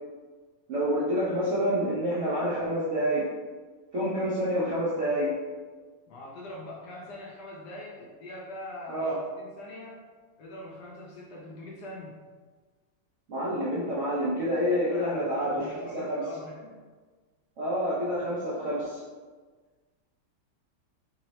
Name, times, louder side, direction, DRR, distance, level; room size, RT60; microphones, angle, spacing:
voice 1, 0.7-3.3 3.9-5.3 8.9-9.2 13.3-16.2 17.6-19.0, equal, 75° right, -8 dB, 0.6 m, -28 dB
voice 2, 6.1-10.1 10.4-12.2 14.7-16.8, left 1 dB, 75° left, -3 dB, 1.0 m, -43 dB
3.7 x 2.0 x 4.0 m, 1.4 s
omnidirectional pair, 2.3 m